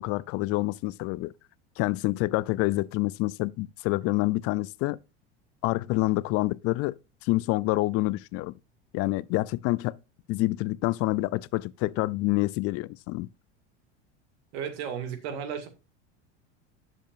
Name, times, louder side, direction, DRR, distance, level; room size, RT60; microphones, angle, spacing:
voice 1, 0.0-1.3 1.8-5.0 5.6-8.5 8.9-10.0 10.3-13.3, left 19 dB, 45° left, 0.4 m, -27 dB
voice 2, 14.5-15.7, right 7 dB, 65° right, 2.2 m, -34 dB
10.0 x 7.1 x 2.6 m
hypercardioid pair, 95°, 35 cm